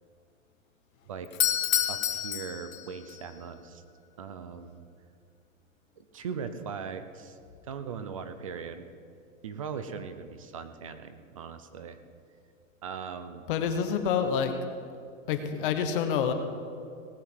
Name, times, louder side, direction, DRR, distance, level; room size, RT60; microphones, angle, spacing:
Doorbell, 1.3-3.2, left 11 dB, 75° left, 1.2 m, -28 dB
voice 1, 1.9-3.8 4.2-4.8 6.0-7.4 7.6-8.9 9.4-12.0 12.8-13.5, right 6 dB, 25° right, 10 dB, 0.4 m, -39 dB
voice 2, 13.5-14.5 15.3-16.3, left 7 dB, 40° left, 7 dB, 1.2 m, -27 dB
18.5 x 7.7 x 6.3 m, 2.4 s
supercardioid pair, 170°, 41 cm